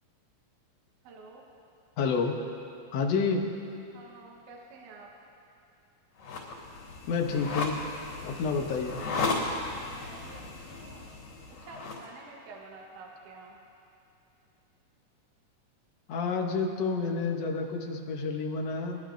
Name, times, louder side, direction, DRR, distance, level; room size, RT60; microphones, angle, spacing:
voice 1, 1.0-1.5 3.9-5.1 9.8-11.1 11.6-13.6, right 3 dB, 75° right, -2 dB, 2.6 m, -49 dB
voice 2, 2.0-2.4 2.9-3.5 7.1-7.8 8.2-9.0 16.1-19.0, left 4 dB, 65° left, 2 dB, 1.7 m, -29 dB
sound 1, 6.2-12.0, left 3 dB, 85° left, 4.7 m, -35 dB
24.5 x 11.5 x 2.6 m, 2.7 s
omnidirectional pair, 3.8 m